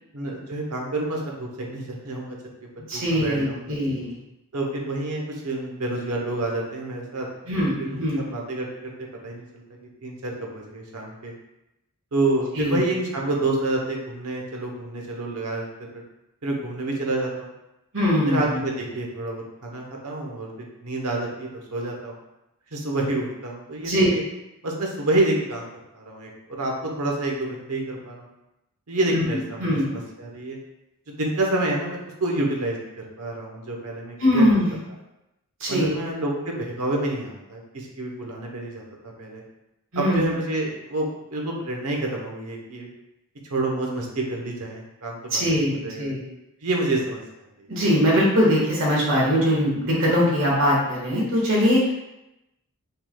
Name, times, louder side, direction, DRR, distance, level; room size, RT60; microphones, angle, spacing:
voice 1, 0.1-2.4 2.9-3.7 4.5-7.3 7.8-8.9 9.2-9.6 10.0-11.3 12.1-15.7 16.4-17.5 18.3-20.5 20.8-22.2 22.7-24.2 24.6-25.7 25.9-28.3 28.9-30.6 31.1-32.9 33.2-34.5 35.7-39.4 40.0-42.9 43.5-46.1 46.6-47.7, right 2 dB, 85° right, 0 dB, 1.0 m, -28 dB
voice 2, 2.9-4.2 7.5-8.3 12.6-12.8 17.9-18.6 23.8-24.1 29.6-29.8 34.2-34.7 35.6-35.9 39.9-40.3 45.3-46.2 47.7-51.9, equal, 60° right, -5 dB, 1.6 m, -21 dB
5.6 x 3.7 x 2.3 m, 0.91 s
head